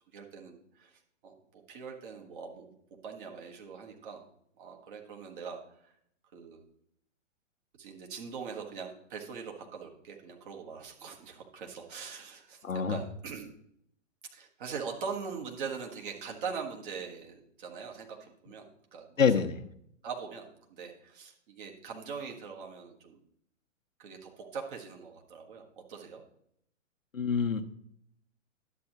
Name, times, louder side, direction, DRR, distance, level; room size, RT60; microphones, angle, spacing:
voice 1, 0.1-0.9 1.2-2.7 3.0-4.3 4.6-5.9 6.3-6.6 7.8-13.5 14.3-19.2 20.0-23.2 24.0-26.2, right 6 dB, 40° right, 1 dB, 1.5 m, -42 dB
voice 2, 12.6-13.0 19.2-19.6 27.1-27.6, left 6 dB, 80° left, 6 dB, 0.9 m, -26 dB
11.0 x 7.8 x 2.9 m, 0.71 s
figure-of-eight pair, 120°, 39 cm